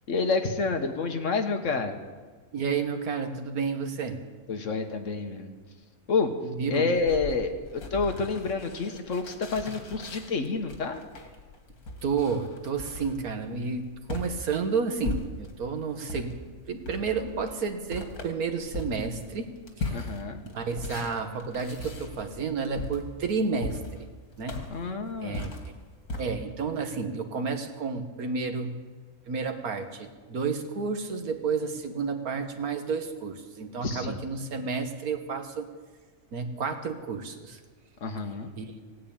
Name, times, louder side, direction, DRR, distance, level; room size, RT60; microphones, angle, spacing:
voice 1, 0.1-2.0 4.5-5.5 6.1-6.3 6.7-11.0 19.9-20.4 24.7-25.5 33.8-34.2 38.0-38.5, left 4 dB, 60° left, 6 dB, 1.6 m, -29 dB
voice 2, 2.5-4.3 6.4-6.9 12.0-19.5 19.8-20.1 20.4-24.1 24.4-24.7 25.2-25.5 26.2-28.8 29.3-35.7 36.3-37.6 38.6-38.8, right 5 dB, 85° right, 6 dB, 1.8 m, -31 dB
sound 1, 7.0-15.7 16.1-26.2, left 3 dB, 85° left, 2.3 m, -39 dB
17.0 x 9.5 x 8.8 m, 1.4 s
omnidirectional pair, 1.5 m